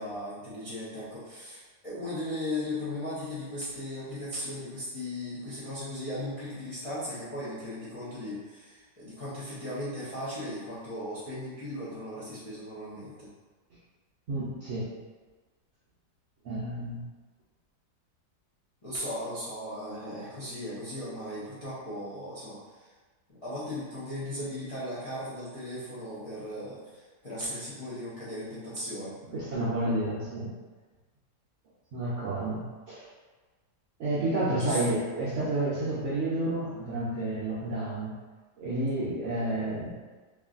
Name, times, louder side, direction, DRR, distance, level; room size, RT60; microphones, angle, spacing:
voice 1, 0.0-13.3 18.8-22.9 23.4-29.2 34.6-34.8, left 1 dB, 50° left, -12 dB, 0.4 m, -37 dB
voice 2, 14.3-14.9 16.4-17.0 29.3-30.5 31.9-33.1 34.0-38.1 38.6-39.9, right 2 dB, 70° right, -9 dB, 0.7 m, -30 dB
3.0 x 2.5 x 2.4 m, 1.3 s
omnidirectional pair, 1.9 m